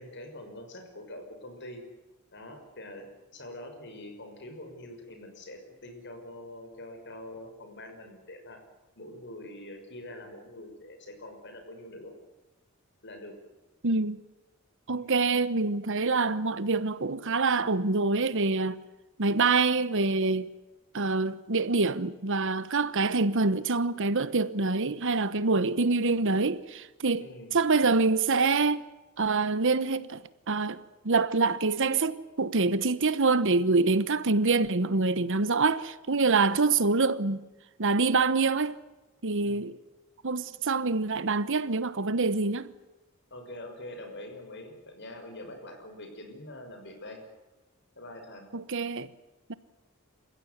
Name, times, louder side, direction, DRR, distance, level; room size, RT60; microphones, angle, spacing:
voice 1, 0.0-1.8 2.3-3.1 3.3-8.6 9.0-12.1 13.0-13.4 14.9-15.1 27.2-27.5 39.4-39.6 43.3-47.2 48.0-48.5, left 1 dB, 55° left, 6.2 m, -44 dB
voice 2, 13.8-14.2 14.9-18.8 19.2-20.5 20.9-28.8 29.2-30.2 30.5-37.4 37.8-38.8 39.2-39.8 40.2-42.7 48.5-49.1 49.5-49.6, right 3 dB, 60° right, 1.2 m, -26 dB
28.5 x 15.5 x 9.5 m
head